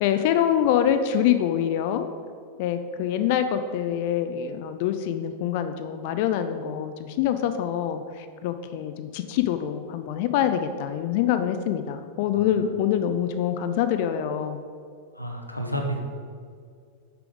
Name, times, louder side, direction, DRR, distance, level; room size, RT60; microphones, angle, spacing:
voice 1, 0.0-2.1 2.6-14.6, left 10 dB, 50° left, 9 dB, 0.4 m, -25 dB
voice 2, 15.1-16.0, right 1 dB, 85° left, 2 dB, 0.9 m, -30 dB
6.7 x 6.1 x 5.0 m, 2.2 s
figure-of-eight pair, 90°, 0 cm